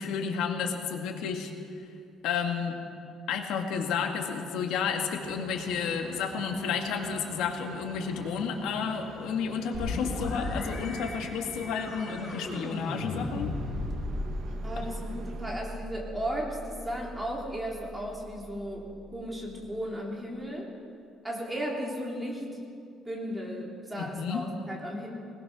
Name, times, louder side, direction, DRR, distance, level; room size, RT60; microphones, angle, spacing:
voice 1, 0.0-1.5 2.2-2.8 3.3-13.5 24.0-24.4, left 6 dB, 80° left, 3 dB, 2.1 m, -31 dB
sound 1, 5.2-15.6, right 6 dB, 50° right, 1.4 m, -45 dB
sound 2, 9.7-19.3, left 1 dB, 35° left, 7.3 m, -37 dB
voice 2, 14.6-18.9 19.1-20.7 21.2-22.6 23.1-25.1, equal, 5° right, -3 dB, 3.5 m, -35 dB
21.5 x 20.0 x 6.2 m, 2.3 s
cardioid pair, 175°, 0 cm